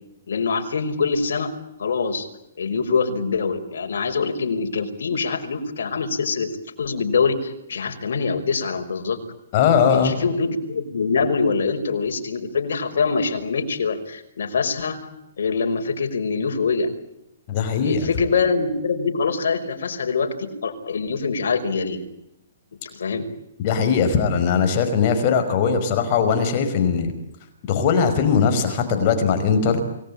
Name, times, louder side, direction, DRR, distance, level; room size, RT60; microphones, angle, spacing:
voice 1, 0.3-1.5 1.8-2.3 2.6-6.5 6.8-9.2 9.9-15.1 15.4-16.9 17.8-22.0 22.9-23.3, left 4 dB, 75° left, 5 dB, 5.4 m, -24 dB
voice 2, 9.5-10.1 17.5-18.1 23.6-27.1 27.7-29.8, left 6 dB, 35° left, 6 dB, 5.3 m, -20 dB
29.0 x 20.0 x 8.8 m, 0.85 s
hypercardioid pair, 155°, 0 cm